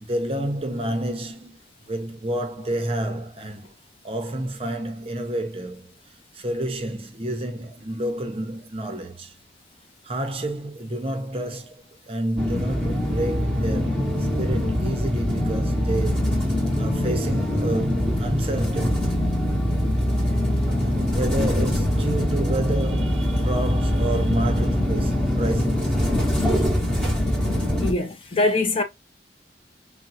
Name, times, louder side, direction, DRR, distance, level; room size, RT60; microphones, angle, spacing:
voice 1, 0.0-1.6 1.9-3.7 4.0-5.9 6.3-9.4 10.0-19.2 21.1-26.0, right 1 dB, 35° right, 0.6 m, -29 dB
sound 1, 12.4-27.9, left 1 dB, 5° left, 0.8 m, -23 dB
voice 2, 27.8-28.8, left 2 dB, 30° left, 0.4 m, -23 dB
3.6 x 2.0 x 2.6 m
head